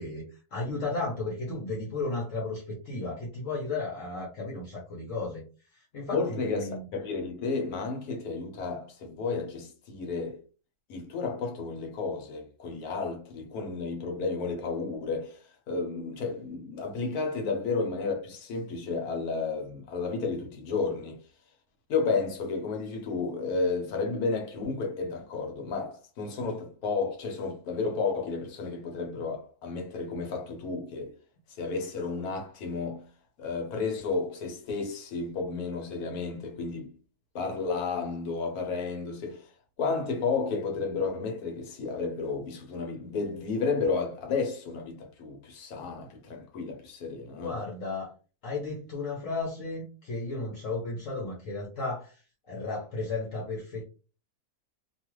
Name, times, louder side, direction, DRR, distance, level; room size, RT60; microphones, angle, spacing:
voice 1, 0.0-5.4 5.7-6.9 47.4-48.1 48.4-52.2 52.5-53.8, left 3 dB, 60° left, 1.1 m, -34 dB
voice 2, 6.1-10.4 10.9-21.2 21.9-31.1 31.6-33.0 33.4-36.9 37.3-39.5 39.8-47.6, left 4 dB, 80° left, 1.3 m, -32 dB
2.8 x 2.3 x 3.0 m
omnidirectional pair, 1.6 m